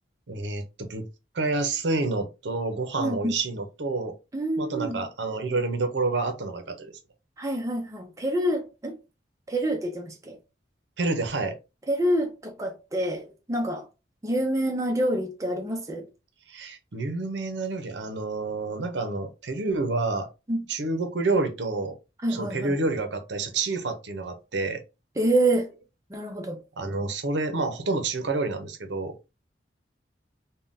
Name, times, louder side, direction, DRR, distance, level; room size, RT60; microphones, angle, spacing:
voice 1, 0.3-1.0 1.3-4.1 4.6-6.9 11.0-11.6 16.5-20.3 20.7-21.9 22.3-24.8 26.8-29.1, right 3 dB, 80° right, 0.6 m, -28 dB
voice 2, 3.0-3.3 4.3-5.1 7.4-8.9 9.5-10.4 11.9-13.8 14.2-16.0 20.5-20.7 22.2-22.8 25.2-25.7 26.1-26.6, right 1 dB, 20° right, 0.5 m, -27 dB
3.5 x 2.2 x 2.5 m
head